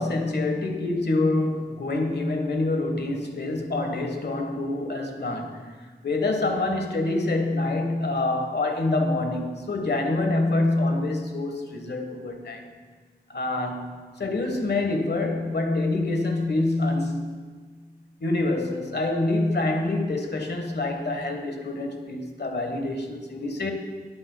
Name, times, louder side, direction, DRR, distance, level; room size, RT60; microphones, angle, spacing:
voice 1, 0.0-5.7 6.0-12.6 13.3-17.4 18.2-23.7, left 2 dB, 80° left, 4 dB, 1.3 m, -26 dB
19.0 x 7.9 x 2.2 m, 1.5 s
wide cardioid pair, 55°, 17 cm